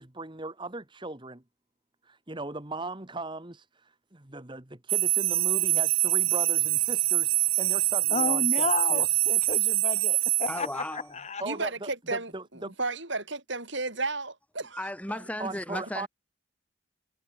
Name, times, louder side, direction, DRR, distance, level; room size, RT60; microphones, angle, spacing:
voice 1, 0.0-1.4 2.0-9.1 11.4-12.7 15.4-16.1, right 2 dB, 20° right, 1.4 m, -38 dB
sound 1, 4.9-10.7, right 19 dB, 75° right, 0.8 m, -25 dB
voice 2, 8.1-11.4, left 3 dB, 30° left, 1.1 m, -32 dB
voice 3, 10.5-11.1 14.8-16.1, left 1 dB, 5° left, 2.1 m, -35 dB
voice 4, 11.4-14.9, right 3 dB, 60° right, 6.9 m, -33 dB
head